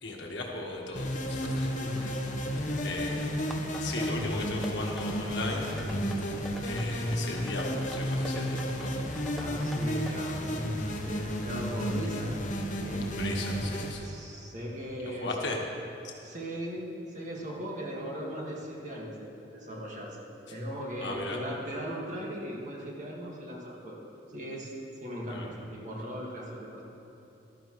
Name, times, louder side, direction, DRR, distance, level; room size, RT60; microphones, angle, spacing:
voice 1, 0.0-1.7 2.0-2.1 2.5-3.4 3.8-5.7 6.6-9.0 13.2-14.1 15.2-15.6 21.0-21.4 25.3-25.5, left 2 dB, 70° left, -1 dB, 1.5 m, -37 dB
sound 1, 1.0-13.9, equal, 45° left, 0.9 m, -32 dB
voice 2, 1.8-2.6 5.7-6.1 9.3-12.4 12.8-13.1 14.0-15.5 16.2-24.0 24.3-26.8, equal, 40° right, -3 dB, 1.8 m, -38 dB
sound 2, 3.5-10.4, left 1 dB, ahead, 0.5 m, -45 dB
14.5 x 12.0 x 3.1 m, 2.9 s
head